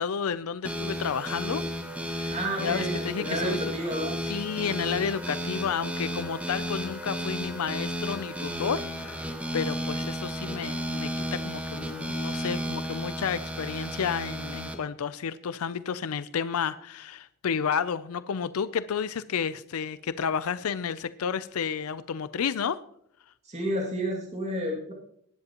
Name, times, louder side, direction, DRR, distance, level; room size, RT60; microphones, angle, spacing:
voice 1, 0.0-3.7 4.2-22.8, left 7 dB, 90° left, 0.5 m, -31 dB
sound 1, 0.6-14.8, equal, 5° right, 1.3 m, -33 dB
voice 2, 2.3-4.2 23.5-24.9, right 1 dB, 30° right, 2.2 m, -31 dB
19.0 x 10.5 x 2.9 m
head